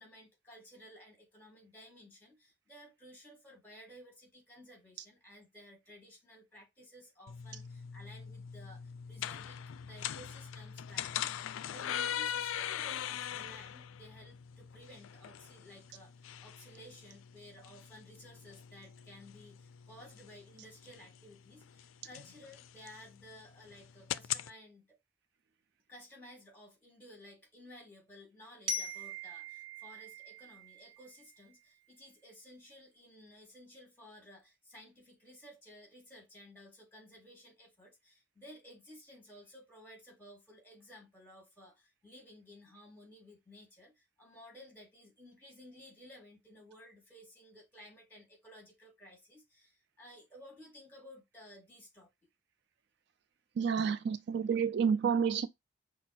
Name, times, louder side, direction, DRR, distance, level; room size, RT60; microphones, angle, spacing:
voice 1, 0.0-8.8 9.1-16.1 16.4-25.0 25.9-52.1, left 1 dB, 10° left, 2.1 m, -55 dB
sound 1, 7.3-24.5, left 10 dB, 85° left, 0.3 m, -42 dB
Glockenspiel, 28.7-31.5, left 1 dB, 85° right, 1.0 m, -41 dB
voice 2, 53.6-55.5, right 6 dB, 55° right, 0.3 m, -29 dB
6.0 x 2.0 x 4.3 m
head